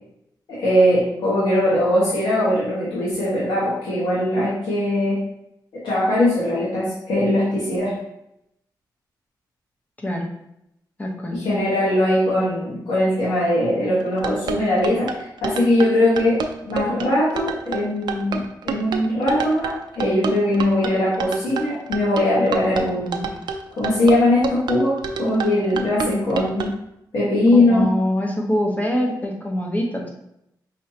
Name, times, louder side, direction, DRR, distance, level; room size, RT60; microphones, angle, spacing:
voice 1, 0.5-5.2 5.7-7.9 11.3-16.4 16.6-23.3 23.8-26.7 27.1-27.9, left 1 dB, 90° left, -9 dB, 1.6 m, -20 dB
voice 2, 10.0-10.3 11.0-11.4 27.7-30.1, left 1 dB, 20° left, 0 dB, 1.0 m, -24 dB
sound 1, 14.0-26.7, right 6 dB, 75° right, 0.5 m, -28 dB
5.3 x 3.3 x 2.8 m, 0.81 s
cardioid pair, 105°, 8 cm